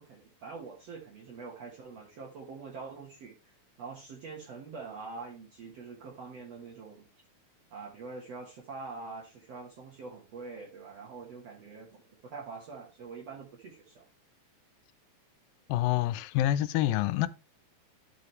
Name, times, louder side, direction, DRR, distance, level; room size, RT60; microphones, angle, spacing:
voice 1, 0.0-7.1 7.7-14.0, right 4 dB, 55° right, 2.2 m, -45 dB
voice 2, 15.7-17.3, left 14 dB, 85° left, 2.3 m, -27 dB
12.0 x 4.8 x 3.2 m
omnidirectional pair, 4.0 m